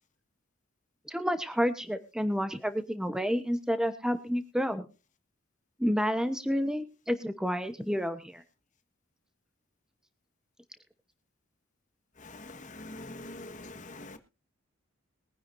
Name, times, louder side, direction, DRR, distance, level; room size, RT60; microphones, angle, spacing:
voice 1, 1.1-4.9 5.8-8.4, equal, 5° right, 0.9 m, -30 dB
voice 2, 12.2-14.2, left 2 dB, 35° left, 1.4 m, -44 dB
22.0 x 10.0 x 2.6 m
head